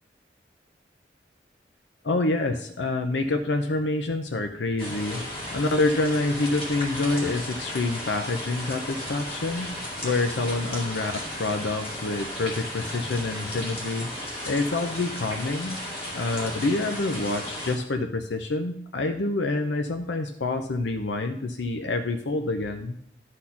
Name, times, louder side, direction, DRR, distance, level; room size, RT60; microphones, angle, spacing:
voice 1, 2.0-5.2 5.5-9.7 10.0-14.1 14.4-15.8 16.1-23.0, left 2 dB, 80° left, 6 dB, 0.7 m, -27 dB
sound 1, 4.8-17.8, left 1 dB, 30° left, 2.2 m, -35 dB
12.0 x 4.3 x 5.7 m, 0.68 s
head